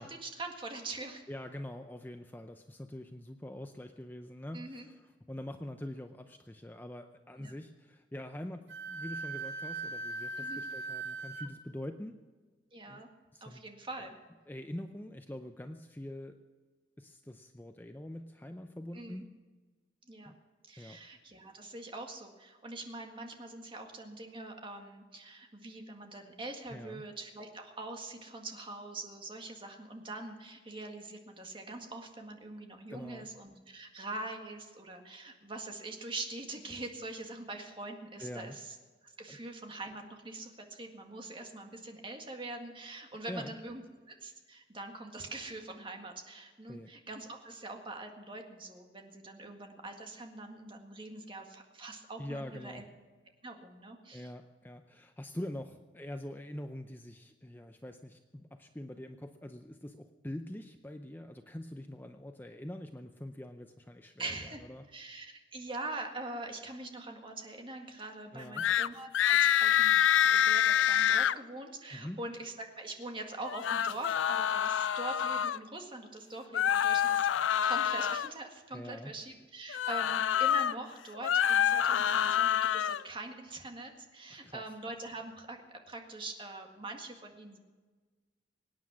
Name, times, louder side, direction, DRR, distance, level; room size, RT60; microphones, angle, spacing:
voice 1, 0.0-1.2 4.5-4.9 7.4-7.5 10.4-10.6 12.7-13.1 13.4-14.2 18.9-19.2 20.1-20.3 20.7-38.8 39.0-52.8 53.4-54.3 64.2-64.6 64.9-77.3 77.6-87.6, right 2 dB, 25° right, 3 dB, 1.8 m, -43 dB
voice 2, 1.3-12.2 12.8-13.0 13.3-13.6 14.0-14.1 14.5-16.4 17.0-19.3 20.3-20.4 20.8-21.0 26.7-27.0 32.9-33.3 38.2-38.6 39.3-39.4 43.3-43.5 46.7-46.9 52.2-52.8 54.1-64.8 68.3-68.7 71.9-72.2 78.7-79.1 84.3-84.6, left 1 dB, 10° left, 6 dB, 0.5 m, -44 dB
Wind instrument woodwind instrument, 8.7-11.5, right 3 dB, 75° right, 1.9 m, -39 dB
sound 1, 68.6-68.9 69.1-71.3 73.4-75.6 76.5-78.3 79.7-80.7 81.1-83.0, left 9 dB, 90° left, 0.4 m, -27 dB
24.0 x 9.6 x 6.3 m, 1.4 s
head